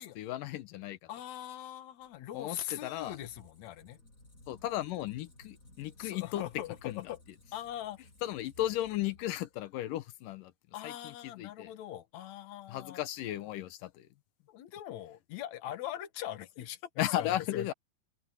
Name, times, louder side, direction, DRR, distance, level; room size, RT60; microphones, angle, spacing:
voice 1, 0.0-1.0 2.3-3.2 4.5-6.4 6.9-7.0 8.2-10.5 10.8-11.1 11.4-11.7 12.7-14.1 17.0-17.7, left 13 dB, 85° left, 2.7 m, -35 dB
voice 2, 1.1-4.0 6.0-7.2 7.5-8.0 10.7-13.0 14.5-17.7, left 12 dB, 65° left, 2.4 m, -41 dB
Squeak, 2.0-9.8, left 1 dB, 25° left, 8.4 m, -59 dB
omnidirectional pair, 3.8 m